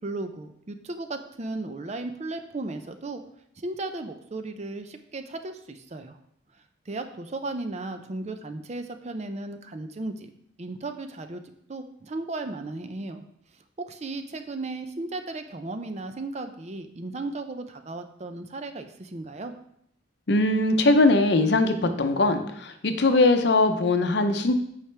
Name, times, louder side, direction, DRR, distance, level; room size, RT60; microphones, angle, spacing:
voice 1, 0.0-3.2 3.6-6.2 6.9-10.3 10.6-11.4 11.7-13.2 13.8-19.5, right 2 dB, 35° right, 8 dB, 0.5 m, -35 dB
voice 2, 20.3-24.5, left 2 dB, 60° left, 7 dB, 0.7 m, -21 dB
8.4 x 4.9 x 3.4 m, 0.71 s
head